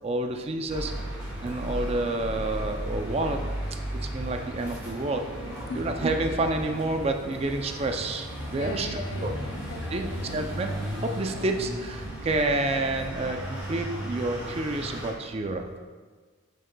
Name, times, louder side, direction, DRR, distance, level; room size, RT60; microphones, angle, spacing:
voice 1, 0.0-0.9 1.4-3.4 4.1-5.4 5.8-9.3 9.9-10.1 10.3-10.7 11.0-15.8, right 2 dB, 30° right, 5 dB, 0.4 m, -29 dB
sound 1, 0.7-15.1, equal, 10° right, 1.7 m, -35 dB
voice 2, 8.6-10.5, left 3 dB, 80° left, 4 dB, 0.7 m, -40 dB
8.7 x 6.4 x 2.2 m, 1.5 s
head